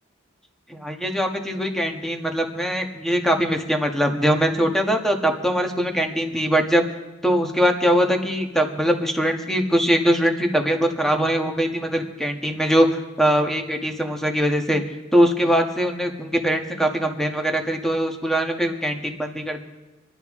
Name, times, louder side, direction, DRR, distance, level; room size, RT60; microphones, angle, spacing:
voice 1, 0.7-6.8 7.2-14.8 15.1-19.6, equal, ahead, 3 dB, 1.3 m, -22 dB
26.5 x 11.0 x 3.7 m, 1.1 s
head